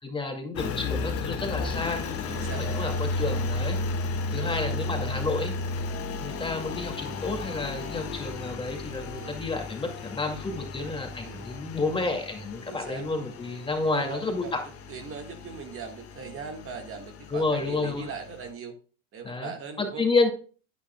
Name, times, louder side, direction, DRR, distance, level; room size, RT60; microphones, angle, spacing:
voice 1, 0.0-2.1 2.6-3.8 4.3-5.5 6.2-14.6 17.3-18.1 19.2-19.5 19.8-20.3, left 3 dB, 15° left, 3 dB, 2.3 m, -30 dB
Engine, 0.6-18.5, left 3 dB, 40° left, 1.7 m, -34 dB
voice 2, 2.0-2.8 4.2-4.5 9.1-9.4 11.2-11.5 12.7-13.0 13.8-14.5 14.9-18.8 19.1-20.0, right 5 dB, 40° right, 4 dB, 1.7 m, -40 dB
9.7 x 9.3 x 2.3 m, 0.38 s
supercardioid pair, 100°, 35 cm